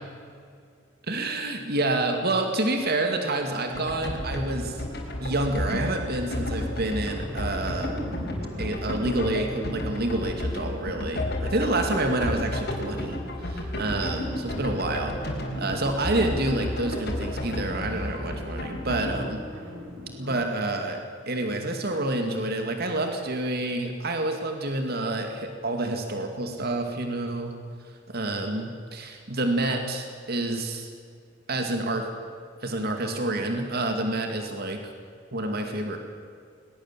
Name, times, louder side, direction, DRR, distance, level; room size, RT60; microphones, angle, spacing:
voice 1, 1.1-4.8 5.2-8.0 8.6-15.1 15.6-19.4 20.2-21.0 21.3-27.5 28.1-30.9 31.5-32.1 32.6-34.8 35.3-36.0, right 2 dB, 55° right, 4 dB, 2.3 m, -28 dB
sound 1, 3.4-20.5, left 1 dB, 85° right, 5.6 m, -43 dB
sound 2, 3.7-19.3, left 1 dB, 55° left, 4.8 m, -32 dB
21.0 x 20.5 x 7.4 m, 2.2 s
head